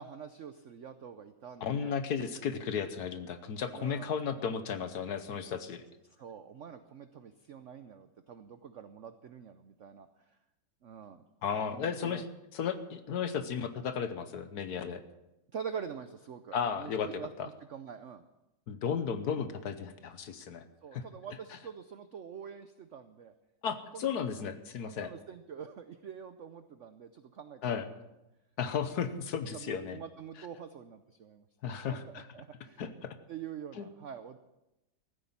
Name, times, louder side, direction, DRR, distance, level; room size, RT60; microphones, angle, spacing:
voice 1, 0.0-2.0 3.7-4.1 6.0-10.1 10.8-11.3 11.6-12.2 15.5-18.2 20.8-23.3 23.9-24.3 24.8-28.0 29.5-31.4 31.9-32.8 33.3-34.4, right 7 dB, 75° right, 10 dB, 0.7 m, -45 dB
voice 2, 1.6-5.8 11.4-12.3 12.5-15.0 16.5-17.5 18.7-20.6 20.9-21.0 23.6-25.1 27.6-27.9 28.6-30.0 31.6-32.3 32.8-33.1 33.8-33.9, left 7 dB, 60° left, 11 dB, 1.3 m, -34 dB
15.0 x 9.5 x 7.3 m, 0.94 s
omnidirectional pair, 2.1 m